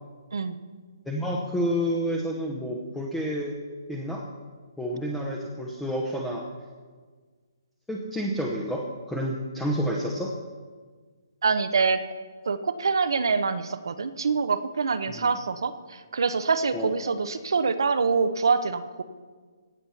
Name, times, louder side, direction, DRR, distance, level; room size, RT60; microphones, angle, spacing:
voice 1, 1.1-3.6 3.9-4.2 4.8-6.4 7.9-10.3 15.2-15.3 16.7-16.9, equal, 5° left, -2 dB, 0.8 m, -29 dB
voice 2, 11.4-12.0 12.5-19.0, right 5 dB, 75° right, 11 dB, 0.9 m, -25 dB
17.0 x 6.8 x 5.7 m, 1.5 s
hypercardioid pair, 165°, 2 cm